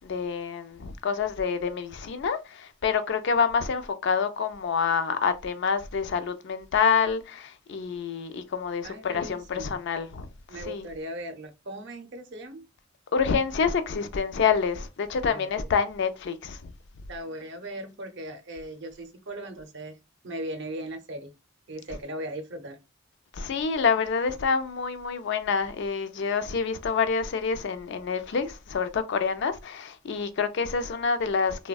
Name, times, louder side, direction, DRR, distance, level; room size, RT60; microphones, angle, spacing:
voice 1, 0.0-10.3 10.6-10.9 13.1-16.6 23.3-31.7, left 5 dB, 60° left, 0.4 m, -27 dB
voice 2, 8.8-9.8 10.5-12.7 15.3-15.5 17.1-20.0 20.2-21.3 21.7-22.8, right 1 dB, 60° right, 0.6 m, -38 dB
3.4 x 2.1 x 2.2 m
head